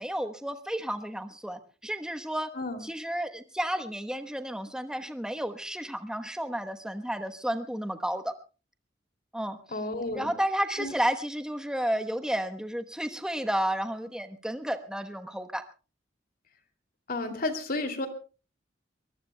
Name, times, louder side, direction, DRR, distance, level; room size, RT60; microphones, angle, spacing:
voice 1, 0.0-2.5 2.8-8.3 9.3-9.8 10.1-15.6, right 1 dB, 5° right, 6 dB, 1.1 m, -32 dB
voice 2, 9.7-10.3 10.8-10.9 17.1-18.1, left 2 dB, 55° left, 6 dB, 2.7 m, -32 dB
23.0 x 22.5 x 2.2 m, 0.35 s
head